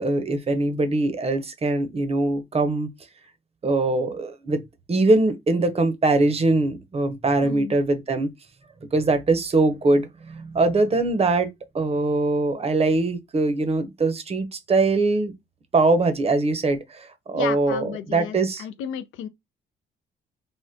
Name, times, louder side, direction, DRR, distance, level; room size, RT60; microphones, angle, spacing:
voice 1, 0.0-2.9 3.6-4.6 4.9-8.3 8.9-11.5 11.7-15.3 15.7-18.6, right 2 dB, 30° right, 0.7 m, -22 dB
voice 2, 7.4-7.8 17.3-19.3, left 9 dB, 85° left, 0.4 m, -33 dB
3.5 x 2.1 x 2.7 m
cardioid pair, 90°, 20 cm